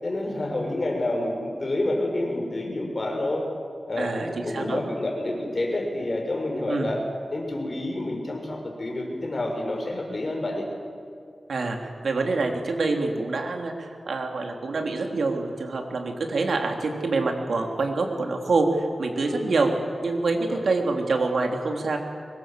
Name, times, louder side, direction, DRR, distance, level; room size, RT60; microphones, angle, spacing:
voice 1, 0.0-3.4 3.9-7.0 7.3-10.6 19.2-19.5 20.4-20.6, left 1 dB, 50° left, 1 dB, 6.5 m, -28 dB
voice 2, 4.0-4.8 6.7-6.9 11.5-19.7 20.0-22.0, right 3 dB, 85° right, 2 dB, 3.3 m, -26 dB
24.0 x 22.5 x 7.7 m, 2.4 s
wide cardioid pair, 60°, 0 cm